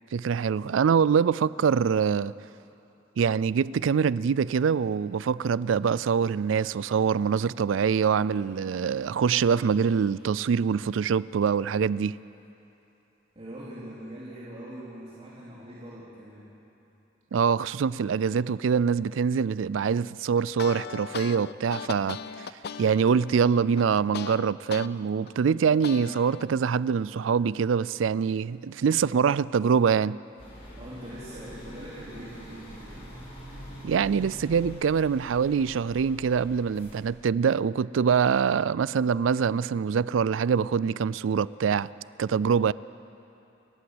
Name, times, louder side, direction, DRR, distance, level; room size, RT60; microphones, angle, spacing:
voice 1, 0.1-2.3 3.2-12.1 17.3-22.5 22.8-30.2 33.8-41.9 42.2-42.7, right 6 dB, 75° right, 19 dB, 0.4 m, -24 dB
voice 2, 13.3-16.5 30.7-33.1, right 1 dB, 35° right, -9 dB, 3.2 m, -42 dB
sound 1, 20.4-24.9 25.3-26.4, left 6 dB, 55° left, 0.5 m, -38 dB
sound 2, 30.4-37.0, equal, 35° left, 6.2 m, -44 dB
30.0 x 11.5 x 7.9 m, 2.9 s
head